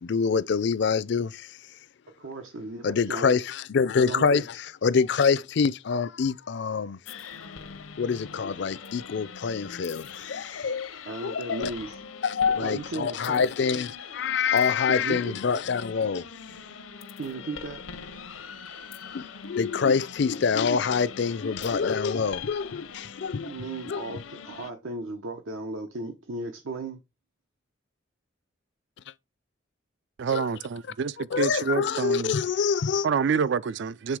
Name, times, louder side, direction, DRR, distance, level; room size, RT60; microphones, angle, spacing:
voice 1, 0.0-1.5 2.8-7.0 8.0-10.9 11.2-11.7 12.2-16.2 19.1-23.5 23.9-24.0 30.3-30.5 31.3-33.1, left 5 dB, 55° left, 0.4 m, -26 dB
voice 2, 2.2-3.4 4.0-4.4 11.1-12.0 12.6-13.5 14.9-15.4 17.2-17.8 23.4-27.0, right 2 dB, 75° right, 0.9 m, -36 dB
sound 1, 7.1-24.7, left 6 dB, 80° left, 0.7 m, -43 dB
voice 3, 30.2-32.3 33.0-34.2, right 5 dB, 60° right, 0.4 m, -27 dB
7.7 x 3.5 x 4.8 m
head